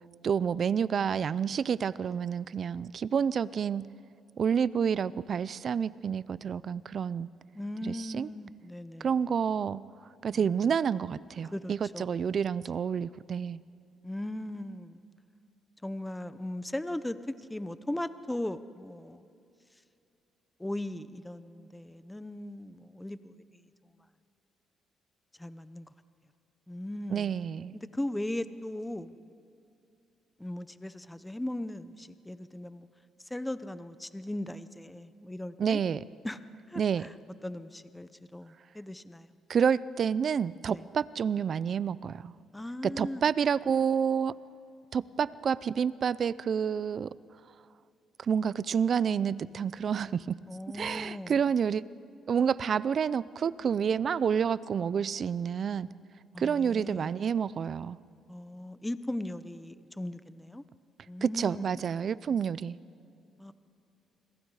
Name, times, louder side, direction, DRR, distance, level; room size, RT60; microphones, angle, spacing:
voice 1, 0.2-3.9 4.4-7.3 7.8-8.3 9.0-9.8 10.2-13.6 27.1-27.7 35.6-36.0 36.8-37.0 39.5-42.3 42.8-44.3 44.9-47.1 48.2-50.4 50.7-51.8 52.3-55.9 56.4-58.0 61.2-62.8, right 7 dB, 55° right, 19 dB, 0.5 m, -29 dB
voice 2, 7.5-9.2 10.3-10.7 11.4-12.1 14.0-15.0 15.8-19.3 20.6-23.6 25.4-25.9 26.7-27.3 27.7-29.1 30.4-32.9 33.2-35.8 36.2-36.4 36.7-37.1 37.4-39.3 40.7-40.8 42.5-43.3 50.5-51.4 56.3-57.1 58.3-60.6 61.1-61.9 62.3-62.4 63.4-63.5, left 1 dB, 10° left, 13 dB, 0.8 m, -38 dB
28.0 x 22.0 x 4.9 m, 2.6 s
cardioid pair, 90°, 0 cm